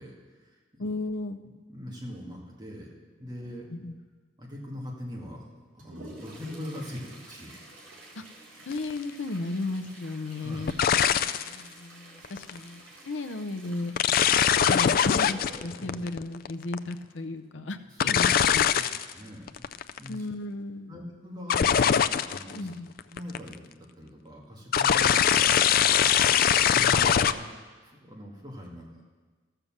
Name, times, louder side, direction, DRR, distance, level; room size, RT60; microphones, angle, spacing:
voice 1, 0.0-0.9 1.7-2.9 3.2-3.6 4.4-5.4 5.7-7.6 10.4-10.8 15.8-15.9 18.0-18.4 19.1-19.7 20.0-20.3 20.9-22.0 22.3-22.7 23.1-27.5 27.8-29.0, left 1 dB, 20° right, -2 dB, 2.0 m, -42 dB
voice 2, 0.8-1.4 3.7-4.0 8.2-8.3 8.6-10.7 11.5-13.9 14.6-18.7 20.1-20.9 22.5-22.9, left 2 dB, 70° left, 8 dB, 0.7 m, -35 dB
Toilet flush, 5.4-17.4 19.2-19.3 19.7-19.8 20.6-20.7 21.3-21.6 22.0-22.1, right 1 dB, 80° right, 3.3 m, -50 dB
sound 1, 8.7-8.9 10.7-11.6 12.2-12.6 14.0-16.9 18.0-19.1 19.5-20.1 21.5-22.6 23.0-23.5 24.7-27.3, left 8 dB, 50° left, 0.3 m, -22 dB
13.5 x 6.8 x 7.3 m, 1.4 s
head